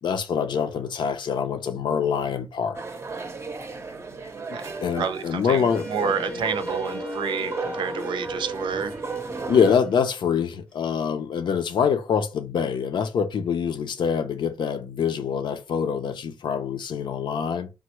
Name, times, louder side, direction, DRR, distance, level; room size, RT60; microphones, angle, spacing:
voice 1, 0.0-2.8 4.8-5.9 9.5-17.7, left 7 dB, 75° left, 0.5 m, -25 dB
sound 1, 2.7-9.8, right 4 dB, 35° right, 0.6 m, -34 dB
voice 2, 4.5-9.0, right 6 dB, 90° right, 0.5 m, -30 dB
Wind instrument woodwind instrument, 5.7-10.6, left 4 dB, 15° left, 0.6 m, -37 dB
3.4 x 2.1 x 2.9 m
cardioid pair, 95°, 8 cm